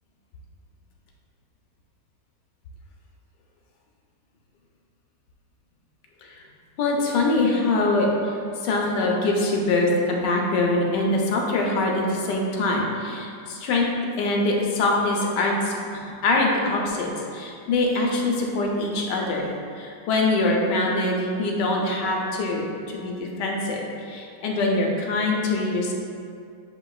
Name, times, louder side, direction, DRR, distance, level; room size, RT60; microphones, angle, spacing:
voice 1, 6.8-13.9 14.2-25.9, left 2 dB, 85° left, -1 dB, 1.3 m, -24 dB
6.5 x 2.9 x 2.3 m, 2.4 s
omnidirectional pair, 1.8 m